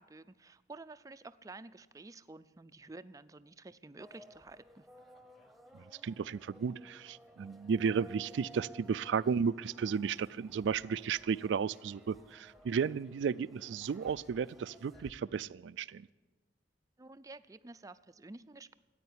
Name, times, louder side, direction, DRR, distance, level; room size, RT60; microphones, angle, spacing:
voice 1, 0.0-4.9 17.0-18.8, right 3 dB, 20° right, 11 dB, 0.4 m, -51 dB
sound 1, 4.0-15.1, equal, ahead, 1.0 m, -57 dB
voice 2, 6.0-16.1, right 6 dB, 85° right, 15 dB, 0.4 m, -33 dB
14.0 x 9.2 x 9.7 m, 1.3 s
head